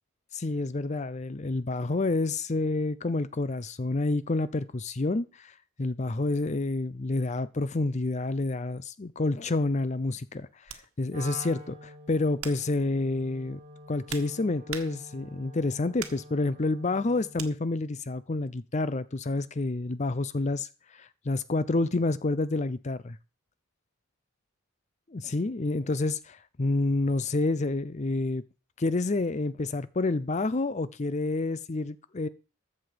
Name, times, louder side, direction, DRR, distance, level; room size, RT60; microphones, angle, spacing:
voice 1, 0.3-13.6 13.9-23.2 25.2-28.4 28.8-32.3, left 2 dB, 35° left, 0.5 m, -29 dB
sound 1, 9.4-9.6 10.7-10.9 11.6-11.8 12.4-12.7 13.6-15.3 16.0-16.3 17.4-17.6, right 9 dB, 75° right, 1.4 m, -42 dB
Wind instrument woodwind instrument, 11.1-17.5, equal, 35° right, 3.6 m, -47 dB
14.0 x 7.7 x 5.1 m
head